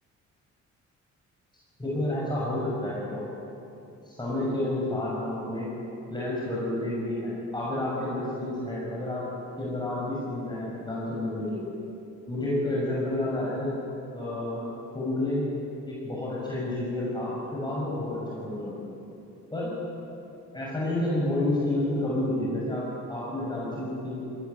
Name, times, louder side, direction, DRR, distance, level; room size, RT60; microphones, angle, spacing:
voice 1, 1.8-3.3 4.0-5.7 6.1-9.2 9.6-11.6 12.3-13.8 14.1-14.7 14.9-15.5 15.8-18.9 19.5-19.7 20.5-24.2, left 1 dB, 15° left, -6 dB, 6.3 m, -30 dB
21.0 x 17.0 x 9.7 m, 2.9 s
cardioid pair, 90°, 30 cm